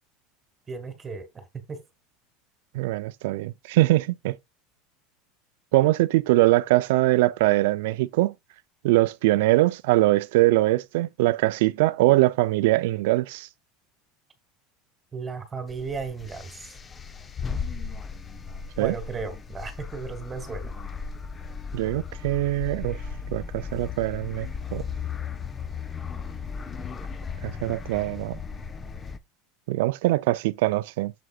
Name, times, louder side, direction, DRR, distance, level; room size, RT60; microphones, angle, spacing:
voice 1, 0.7-1.8 15.1-16.7 18.8-20.7, right 5 dB, 20° right, 1.7 m, -35 dB
voice 2, 2.7-4.4 5.7-8.3 8.8-13.5 18.8-18.9 21.7-23.0 23.3-24.8 27.4-28.4 29.7-31.1, right 18 dB, 80° right, 0.5 m, -22 dB
sound 1, 15.7-29.2, left 6 dB, 20° left, 0.7 m, -36 dB
7.8 x 7.0 x 2.4 m
supercardioid pair, 125°, 0 cm